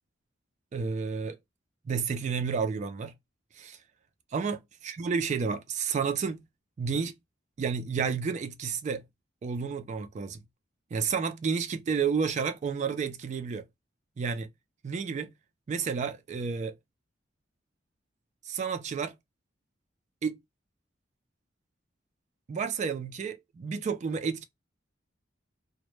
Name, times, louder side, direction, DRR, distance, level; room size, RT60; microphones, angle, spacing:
voice 1, 0.7-1.4 1.9-3.1 3.6-3.8 4.3-6.4 6.8-7.1 7.6-9.0 9.4-10.4 10.9-13.7 14.2-14.5 14.8-15.3 15.7-16.8 18.5-19.2 20.2-20.4 22.5-24.4, right 5 dB, 40° right, 0.3 m, -31 dB
2.0 x 2.0 x 2.9 m
head